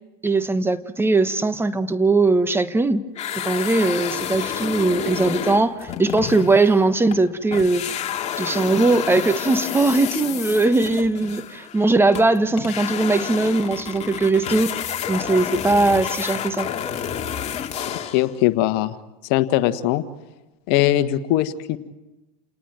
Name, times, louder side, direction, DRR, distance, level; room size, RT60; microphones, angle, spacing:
voice 1, 0.2-3.0 3.3-7.9 8.4-14.7 15.1-16.7, right 3 dB, 10° right, 1.3 m, -20 dB
sound 1, 3.1-7.2 7.5-18.3, left 9 dB, 35° left, 2.5 m, -30 dB
voice 2, 18.1-18.9 19.3-20.0 20.7-21.8, left 14 dB, 55° left, 1.5 m, -20 dB
29.0 x 19.0 x 9.0 m
hypercardioid pair, 100°, 20 cm